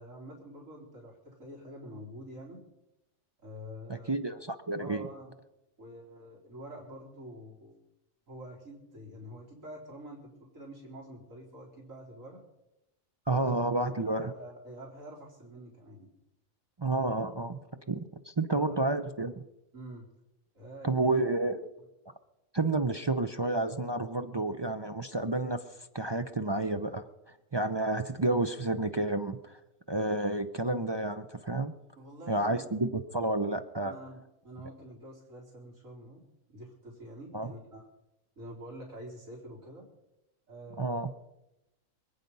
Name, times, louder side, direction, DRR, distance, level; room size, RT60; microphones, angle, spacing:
voice 1, 0.0-2.6 3.4-4.3 4.8-5.3 5.8-7.8 8.3-12.4 13.3-13.5 13.9-16.1 18.5-18.8 19.7-20.1 20.5-21.1 32.0-32.7 33.8-36.2 36.5-37.9 38.4-39.8 40.5-41.0, right 1 dB, 70° right, -3 dB, 4.3 m, -47 dB
voice 2, 3.9-5.1 13.3-14.3 16.8-19.4 20.8-21.7 22.5-25.6 25.9-29.6 29.9-31.7 32.3-33.9 37.3-37.5 40.8-41.1, right 2 dB, 40° right, 7 dB, 0.4 m, -30 dB
25.0 x 9.4 x 5.4 m, 0.92 s
omnidirectional pair, 1.4 m